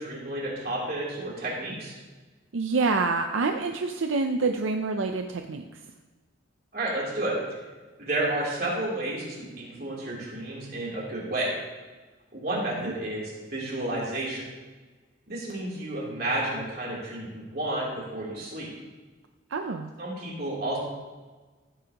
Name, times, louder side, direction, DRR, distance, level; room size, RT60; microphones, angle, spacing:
voice 1, 0.0-2.0 6.7-7.4 8.0-11.5 12.3-14.4 15.3-18.7 20.0-20.8, right 1 dB, 50° right, -5 dB, 3.3 m, -31 dB
voice 2, 2.5-5.8 12.8-12.9 19.5-19.9, right 3 dB, 80° right, 5 dB, 0.5 m, -27 dB
15.0 x 8.7 x 3.0 m, 1.3 s
head